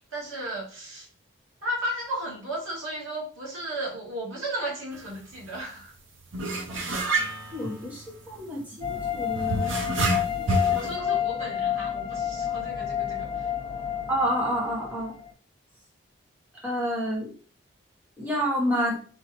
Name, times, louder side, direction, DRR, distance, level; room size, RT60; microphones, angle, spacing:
voice 1, 0.1-1.1 1.6-5.9 10.7-13.5, right 1 dB, 90° right, -4 dB, 2.3 m, -34 dB
sound 1, 4.9-5.0 5.4-5.6 6.3-8.4 9.3-10.9, right 2 dB, 75° right, 0.8 m, -28 dB
voice 2, 7.5-9.7 10.3-10.8 14.1-15.1 16.6-17.3 18.2-19.0, equal, 10° right, -4 dB, 1.2 m, -29 dB
sound 2, 8.8-15.3, left 9 dB, 20° left, 0.8 m, -29 dB
4.4 x 3.6 x 3.1 m, 0.40 s
head